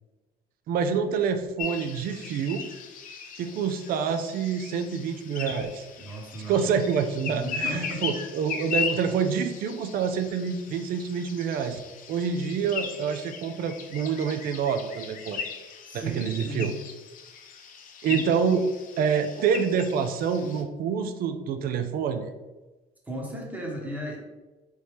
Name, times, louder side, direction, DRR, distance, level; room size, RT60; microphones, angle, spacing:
voice 1, 0.7-2.6 3.3-5.9 6.5-11.8 12.1-15.4 15.9-16.7 18.0-18.6 19.0-22.3, right 6 dB, 60° right, 8 dB, 0.4 m, -27 dB
sound 1, 1.6-20.6, left 6 dB, 55° left, 0.6 m, -38 dB
voice 2, 6.0-6.7 7.3-8.2 15.9-16.8 18.1-18.3 23.1-24.2, equal, 10° right, -1 dB, 1.1 m, -35 dB
4.1 x 3.1 x 3.3 m, 1.2 s
cardioid pair, 110°, 17 cm